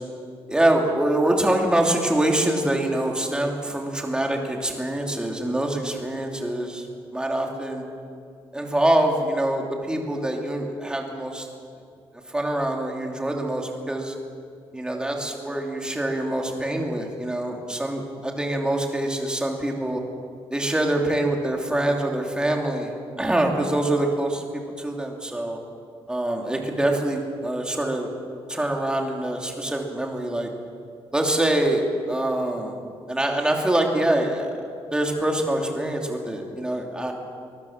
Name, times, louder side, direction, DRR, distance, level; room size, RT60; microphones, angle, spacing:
voice 1, 0.5-6.9 7.1-7.8 8.5-11.5 12.3-14.1 14.7-20.0 20.5-22.9 23.2-25.6 26.1-28.1 28.5-30.5 31.1-32.8 33.1-34.5 34.9-37.1, right 1 dB, 10° right, 1 dB, 2.8 m, -25 dB
23.5 x 21.0 x 7.3 m, 2.4 s
wide cardioid pair, 160°, 10 cm